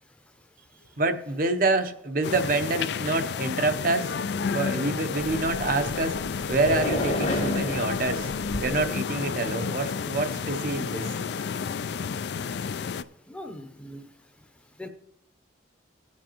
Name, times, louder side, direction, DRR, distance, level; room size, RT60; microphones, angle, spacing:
voice 1, 1.0-4.1 4.5-6.2 6.5-8.3 8.6-11.1, right 3 dB, 45° right, 8 dB, 0.7 m, -27 dB
sound 1, 2.2-13.0, left 6 dB, 60° left, 0.4 m, -31 dB
sound 2, 5.2-8.9, left 1 dB, 85° left, 1.8 m, -32 dB
voice 2, 13.3-14.0 14.8-14.9, left 1 dB, 5° left, 5 dB, 0.7 m, -40 dB
18.5 x 7.4 x 3.0 m, 0.84 s
head